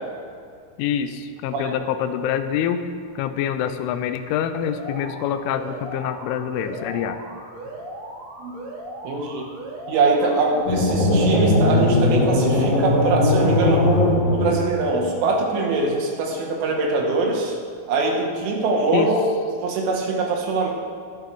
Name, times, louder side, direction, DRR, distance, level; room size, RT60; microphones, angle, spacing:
voice 1, 0.8-7.2 18.9-19.1, left 9 dB, 85° left, 9 dB, 3.1 m, -26 dB
Alarm, 4.5-10.5, right 1 dB, 50° right, 3.2 m, -37 dB
voice 2, 9.0-9.5 9.9-13.9 14.3-17.6 17.9-19.2 19.6-20.7, right 3 dB, 80° right, 0 dB, 4.0 m, -23 dB
sound 1, 10.7-14.9, left 1 dB, 45° left, 2.5 m, -19 dB
22.0 x 8.0 x 3.4 m, 2.3 s
omnidirectional pair, 5.5 m